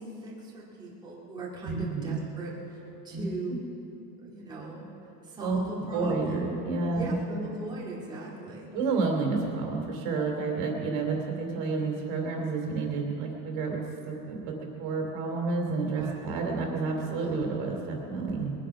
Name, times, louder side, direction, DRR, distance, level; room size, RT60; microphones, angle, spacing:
voice 1, 0.0-2.8 3.0-3.6 4.2-4.8 5.2-6.4 6.8-8.7 15.9-16.2, right 2 dB, 10° right, -6 dB, 2.1 m, -39 dB
voice 2, 1.6-2.2 3.1-3.6 5.4-5.6 5.9-7.1 8.7-18.5, right 4 dB, 55° right, 1 dB, 2.9 m, -30 dB
21.5 x 10.0 x 5.8 m, 2.9 s
supercardioid pair, 155°, 49 cm